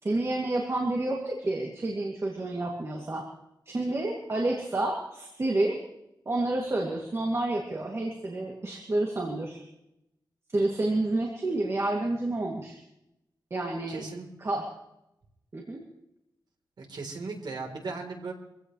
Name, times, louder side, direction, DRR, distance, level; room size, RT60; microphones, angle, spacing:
voice 1, 0.0-3.2 3.7-5.8 6.3-9.6 10.5-12.8 13.5-14.0 14.4-14.6 15.5-15.8, right 2 dB, 40° right, -1 dB, 2.7 m, -29 dB
voice 2, 13.9-14.3 16.8-18.3, right 4 dB, 75° right, 1 dB, 4.0 m, -37 dB
25.0 x 16.0 x 3.3 m, 0.84 s
wide cardioid pair, 140°, 7 cm